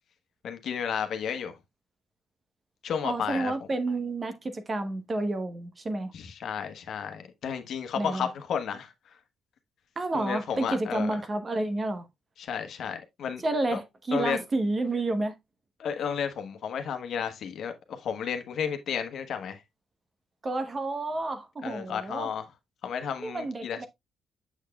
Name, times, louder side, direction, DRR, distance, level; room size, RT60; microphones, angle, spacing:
voice 1, 0.4-1.6 2.8-3.5 6.1-8.9 10.1-11.2 12.4-13.4 14.1-14.4 15.8-19.6 21.6-22.5 22.8-23.9, left 7 dB, 65° left, 1.2 m, -32 dB
voice 2, 3.0-6.1 8.0-8.3 10.0-12.1 13.4-15.3 20.4-22.3 23.2-23.9, right 2 dB, 30° right, 1.0 m, -30 dB
7.2 x 6.5 x 2.3 m
cardioid pair, 90°, 0 cm